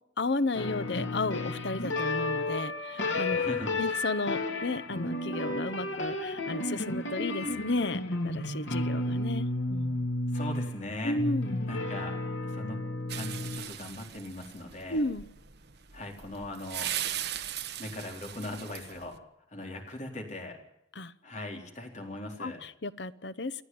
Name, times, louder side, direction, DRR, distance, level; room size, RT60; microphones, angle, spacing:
voice 1, 0.2-3.5 3.8-10.1 11.0-11.6 14.9-15.3 20.9-21.1 22.4-23.6, left 2 dB, 60° left, 14 dB, 0.9 m, -33 dB
sound 1, 0.5-13.6, left 2 dB, 85° left, 2.8 m, -32 dB
voice 2, 3.3-3.8 10.3-11.2 11.7-12.2 12.4-12.8 13.1-15.0 15.9-16.9 17.8-19.2 19.5-20.6 21.2-22.6, left 1 dB, 40° left, 2 dB, 4.1 m, -39 dB
sound 2, 13.1-19.1, right 11 dB, 60° right, 1.2 m, -39 dB
28.0 x 9.8 x 9.5 m, 0.82 s
head